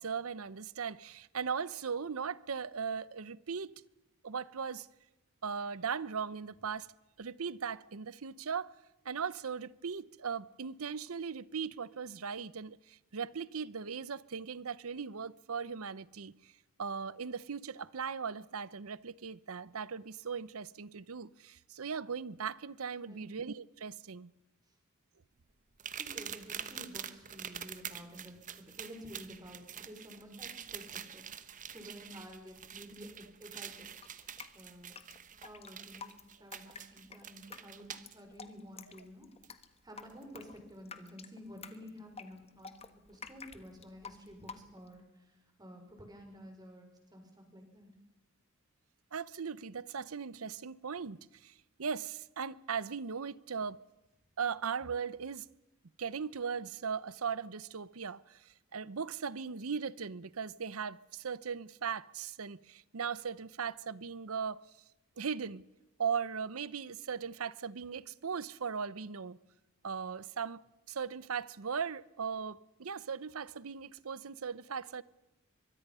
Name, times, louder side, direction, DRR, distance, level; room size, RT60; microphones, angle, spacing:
voice 1, 0.0-3.7 4.2-4.9 5.4-6.9 7.2-8.7 9.0-16.5 16.8-24.3 49.1-53.8 54.4-55.5 56.0-64.6 65.2-65.6 66.0-69.4 69.8-70.6 70.9-75.0, right 6 dB, 75° right, 0.7 m, -38 dB
sound 1, 25.8-38.2 39.4-39.5 40.1-40.2, right 9 dB, 35° right, 1.1 m, -46 dB
voice 2, 25.9-33.9 34.5-34.9 35.4-36.1 36.4-39.3 39.8-45.3 45.6-47.9, equal, 20° right, 5.5 m, -51 dB
Drip, 34.0-45.0, left 5 dB, 30° left, 1.4 m, -50 dB
24.0 x 22.5 x 5.6 m
head